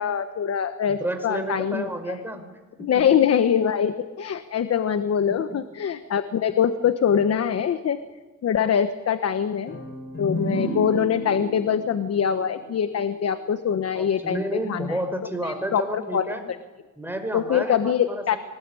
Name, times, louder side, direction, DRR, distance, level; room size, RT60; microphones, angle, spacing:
voice 1, 0.0-1.9 2.8-8.0 8.4-9.8 10.2-14.4 14.7-15.0 15.4-16.3 17.3-18.4, left 8 dB, 55° left, 10 dB, 1.3 m, -23 dB
voice 2, 0.9-3.1 5.3-5.6 13.9-16.4 17.0-18.4, right 1 dB, 5° right, 6 dB, 5.1 m, -31 dB
sound 1, 9.7-13.3, equal, 35° left, 7.7 m, -33 dB
24.0 x 21.5 x 10.0 m, 1.2 s
cardioid pair, 90°, 30 cm